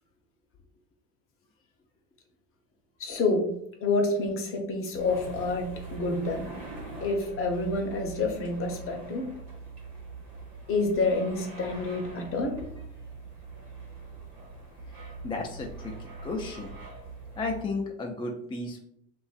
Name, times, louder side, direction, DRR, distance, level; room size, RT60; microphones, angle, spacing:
voice 1, 3.0-3.5 3.8-6.5 7.0-9.3 10.7-12.6, left 3 dB, 40° left, 2 dB, 0.7 m, -28 dB
sound 1, 4.9-17.6, right 3 dB, 85° right, 1.1 m, -43 dB
voice 2, 15.2-16.7 17.4-18.8, left 3 dB, 15° left, 2 dB, 0.3 m, -34 dB
2.4 x 2.3 x 2.4 m, 0.73 s
hypercardioid pair, 65°, 32 cm